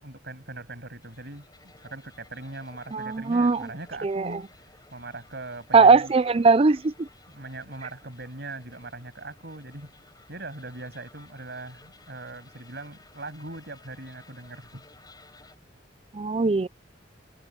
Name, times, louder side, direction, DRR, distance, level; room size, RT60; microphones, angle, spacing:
voice 1, 0.0-4.5 4.9-6.1 7.3-9.9 10.3-14.9, right 2 dB, 60° right, 7.6 m, -40 dB
sound 1, 1.0-15.6, left 3 dB, 20° left, 7.7 m, -56 dB
voice 2, 2.9-3.7 4.0-4.3 5.7-7.1 16.1-16.7, right 4 dB, 30° right, 0.5 m, -20 dB
head